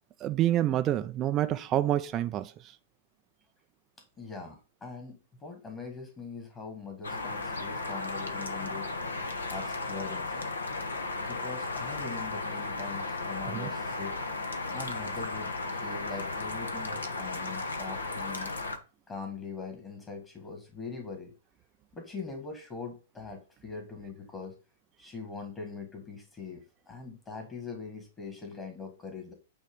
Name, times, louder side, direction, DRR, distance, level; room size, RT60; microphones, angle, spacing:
voice 1, 0.2-2.7 13.5-13.7, right 12 dB, 25° right, 0.4 m, -28 dB
voice 2, 4.2-5.1 5.4-8.9 9.5-10.5 11.3-14.2 14.7-18.5 19.1-21.3 21.9-24.6 25.0-29.3, left 4 dB, 20° left, 1.7 m, -42 dB
sound 1, 7.0-18.8, left 3 dB, 70° left, 1.0 m, -35 dB
9.0 x 3.1 x 5.2 m
figure-of-eight pair, 105°, 0 cm